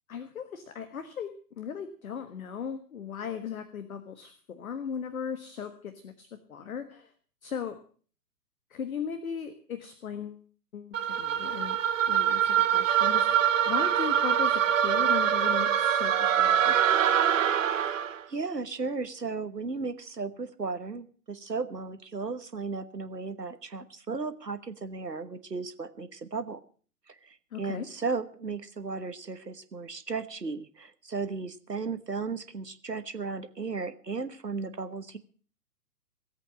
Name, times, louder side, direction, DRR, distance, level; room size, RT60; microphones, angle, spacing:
voice 1, 0.1-7.1 7.4-7.8 8.7-10.4 10.7-11.8 12.1-16.8 27.5-27.9, left 7 dB, 60° left, 10 dB, 1.6 m, -37 dB
sound 1, 10.9-18.2, right 9 dB, 50° right, 1.1 m, -24 dB
voice 2, 18.3-26.6 27.1-35.2, right 4 dB, 90° right, 11 dB, 1.3 m, -35 dB
18.0 x 8.2 x 7.2 m, 0.43 s
figure-of-eight pair, 120°, 48 cm